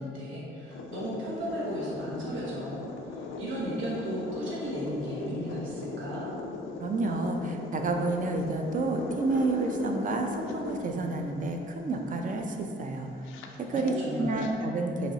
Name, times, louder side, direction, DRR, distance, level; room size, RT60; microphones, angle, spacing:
voice 1, 0.0-6.3 13.7-14.5, equal, 80° right, -6 dB, 1.1 m, -35 dB
sound 1, 0.7-14.5, left 3 dB, 90° left, 0.4 m, -39 dB
voice 2, 6.8-13.3 13.6-15.1, right 2 dB, 40° right, 4 dB, 0.5 m, -30 dB
5.6 x 3.1 x 2.8 m, 2.5 s
cardioid pair, 90°, 20 cm